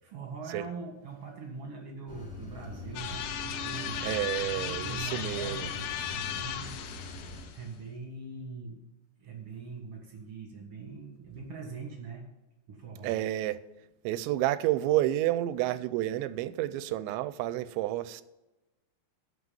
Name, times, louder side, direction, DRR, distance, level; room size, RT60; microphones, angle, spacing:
voice 1, 0.0-4.1 4.4-8.8 9.2-12.3 12.7-13.1, right 4 dB, 50° right, 1.9 m, -42 dB
sound 1, 2.1-7.5, left 1 dB, 35° left, 1.5 m, -43 dB
sound 2, 3.0-7.7, left 10 dB, 80° left, 2.7 m, -36 dB
voice 2, 4.0-5.7 13.0-13.6 14.0-18.2, right 14 dB, 90° right, 2.9 m, -30 dB
12.5 x 5.7 x 7.0 m
omnidirectional pair, 5.1 m